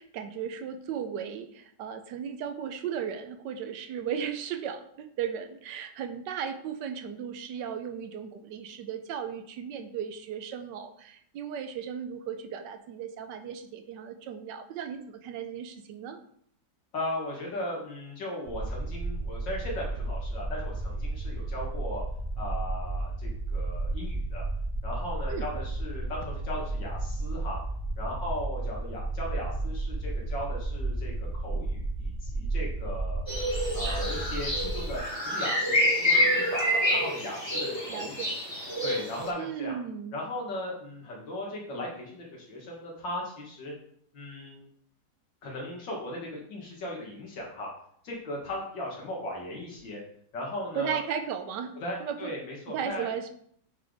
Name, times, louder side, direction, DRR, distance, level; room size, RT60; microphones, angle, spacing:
voice 1, 0.0-16.2 25.3-25.5 37.9-38.3 39.4-40.2 50.7-51.7 52.0-52.3 52.7-53.3, right 8 dB, 75° right, 8 dB, 1.2 m, -36 dB
voice 2, 16.9-22.0 22.4-24.4 24.8-27.6 28.0-33.2 33.7-38.3 38.8-39.8 40.1-43.7 44.1-44.6 45.4-47.7 48.0-50.0 50.3-51.0 51.8-53.1, left 1 dB, 75° left, -3 dB, 2.5 m, -37 dB
sound 1, 18.5-35.0, right 2 dB, 30° right, 0.7 m, -33 dB
sound 2, 33.3-39.3, equal, 15° left, 1.8 m, -27 dB
8.0 x 3.4 x 3.9 m, 0.65 s
omnidirectional pair, 2.0 m